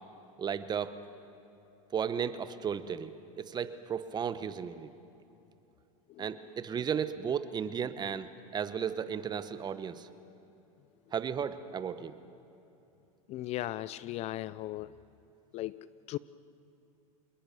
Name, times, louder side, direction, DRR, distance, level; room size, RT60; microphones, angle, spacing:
voice 1, 0.4-1.0 1.9-4.9 6.2-10.1 11.1-12.2, right 7 dB, 25° right, 12 dB, 1.0 m, -34 dB
voice 2, 13.3-14.9 15.5-16.2, left 15 dB, 35° left, 18 dB, 0.4 m, -37 dB
27.0 x 21.0 x 6.8 m, 2.9 s
supercardioid pair, 125°, 18 cm